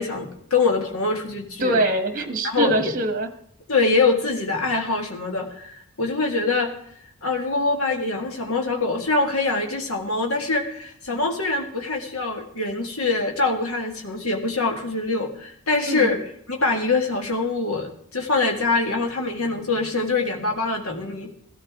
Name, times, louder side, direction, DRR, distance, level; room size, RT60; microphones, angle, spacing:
voice 1, 0.0-1.8 2.4-2.9 3.7-6.7 7.2-21.3, left 3 dB, 75° left, 2 dB, 2.0 m, -24 dB
voice 2, 1.6-3.3 15.9-16.2, right 1 dB, 40° right, 7 dB, 1.5 m, -23 dB
15.5 x 13.5 x 3.7 m, 0.69 s
head